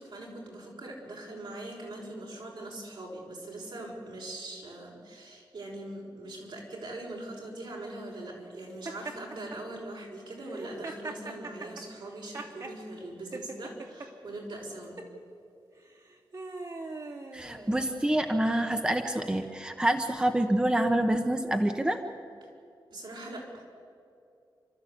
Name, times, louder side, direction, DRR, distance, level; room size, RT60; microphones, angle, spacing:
voice 1, 0.0-15.0 22.9-23.6, right 1 dB, 70° right, -2 dB, 6.0 m, -41 dB
Laughter, 8.8-9.6 10.4-12.8 13.3-14.1 14.8-15.1 15.9-18.1, right 3 dB, 50° right, 2.9 m, -41 dB
voice 2, 17.3-22.0, right 1 dB, 10° right, 5 dB, 1.0 m, -27 dB
29.0 x 13.5 x 8.5 m, 2.5 s
wide cardioid pair, 105°, 8 cm